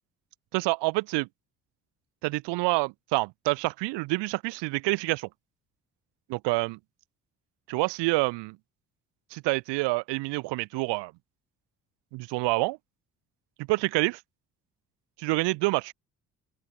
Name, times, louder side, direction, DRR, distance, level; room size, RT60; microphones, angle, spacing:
voice 1, 0.5-1.3 2.2-5.3 6.3-6.8 7.7-8.6 9.3-11.1 12.1-12.8 13.6-14.2 15.2-15.9, right 24 dB, 60° right, 0.9 m, -27 dB
open air
figure-of-eight pair, 45°, 47 cm